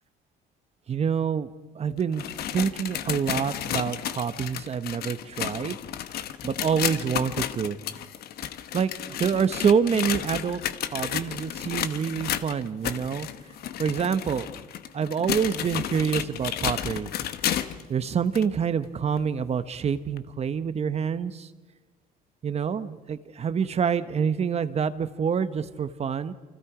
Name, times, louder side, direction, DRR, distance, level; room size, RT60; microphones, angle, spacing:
voice 1, 0.9-2.2 2.5-5.7 6.4-7.8 8.7-10.6 10.9-13.3 13.8-14.5 14.9-17.1 17.9-21.5 22.4-26.3, right 7 dB, 40° right, 12 dB, 1.1 m, -27 dB
sound 1, 2.0-17.9 18.3-18.5 19.2-19.3 20.2-20.3, left 10 dB, 65° left, 1.1 m, -32 dB
28.5 x 25.0 x 5.0 m, 1.3 s
cardioid pair, 110°, 17 cm